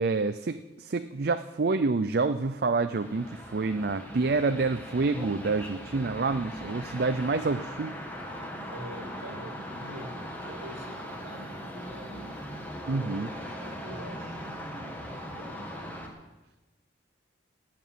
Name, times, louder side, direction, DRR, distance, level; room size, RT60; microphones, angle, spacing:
voice 1, 0.0-8.0 12.9-13.3, right 3 dB, 55° right, 9 dB, 0.5 m, -28 dB
sound 1, 2.9-16.1, equal, 10° left, 1.8 m, -40 dB
voice 2, 8.7-12.4 13.6-14.5 15.3-15.9, right 1 dB, 85° right, 3 dB, 1.9 m, -45 dB
17.5 x 6.0 x 9.4 m, 1.1 s
head